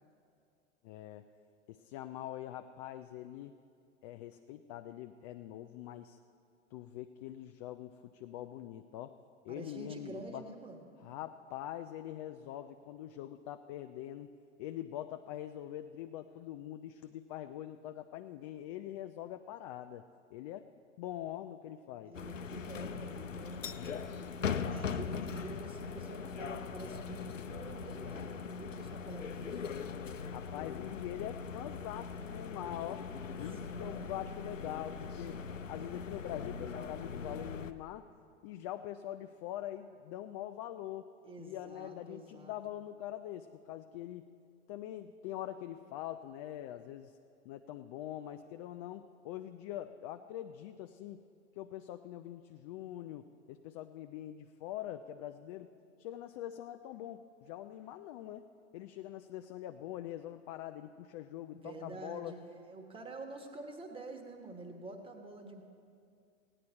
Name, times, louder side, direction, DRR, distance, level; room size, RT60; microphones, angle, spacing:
voice 1, 0.8-1.3 1.7-3.5 4.0-6.2 6.7-9.2 9.4-10.5 11.0-14.3 14.6-20.7 21.0-22.1 30.3-33.1 33.4-35.4 35.7-38.1 38.4-41.1 41.4-44.3 44.7-47.1 47.5-51.2 51.6-55.7 56.0-58.4 58.7-62.3, left 12 dB, 35° left, 8 dB, 0.4 m, -43 dB
voice 2, 9.5-10.8 22.0-23.7 24.2-29.6 33.6-34.3 41.2-42.5 61.5-65.6, right 2 dB, 15° right, 4 dB, 1.3 m, -48 dB
sound 1, 22.1-37.7, left 6 dB, 85° left, 0.6 m, -40 dB
16.5 x 10.0 x 4.4 m, 2.4 s
figure-of-eight pair, 90°, 37 cm